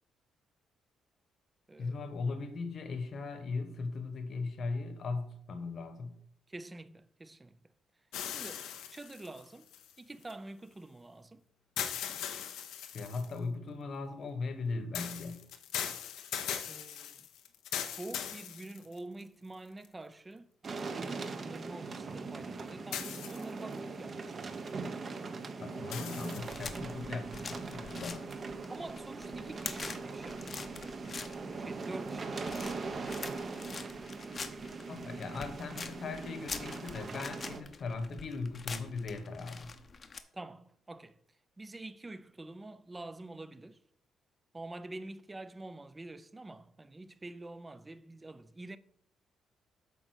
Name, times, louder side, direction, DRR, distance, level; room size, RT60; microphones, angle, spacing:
voice 1, 1.8-6.2 12.9-15.4 25.6-28.3 34.9-39.7, left 4 dB, 55° left, 1.2 m, -38 dB
voice 2, 6.5-7.6 8.3-9.7 10.0-11.4 16.6-17.3 17.7-24.6 28.7-33.1 34.2-34.7 40.3-41.2 41.6-43.8 44.5-48.8, right 2 dB, 20° right, 0.5 m, -47 dB
sound 1, 8.1-10.3 11.8-13.4 14.9-19.2 19.8-19.9 22.9-23.7 25.9-26.7, left 9 dB, 85° left, 0.7 m, -40 dB
sound 2, 20.6-37.6, right 4 dB, 40° right, 0.9 m, -41 dB
sound 3, 26.3-40.2, left 5 dB, 40° left, 0.8 m, -46 dB
8.3 x 3.9 x 6.2 m
cardioid pair, 90°, 0 cm